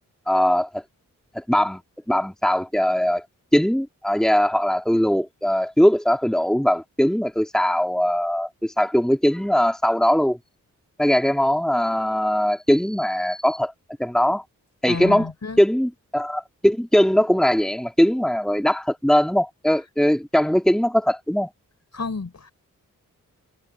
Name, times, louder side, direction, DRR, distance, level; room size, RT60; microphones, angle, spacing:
voice 1, 0.3-0.8 1.3-1.8 2.1-3.2 3.5-10.4 11.0-13.7 14.0-14.4 14.8-15.3 15.6-21.5, equal, ahead, 2.3 m, -20 dB
voice 2, 14.9-15.6 21.9-22.5, left 4 dB, 55° left, 5.8 m, -30 dB
cardioid pair, 65°, 33 cm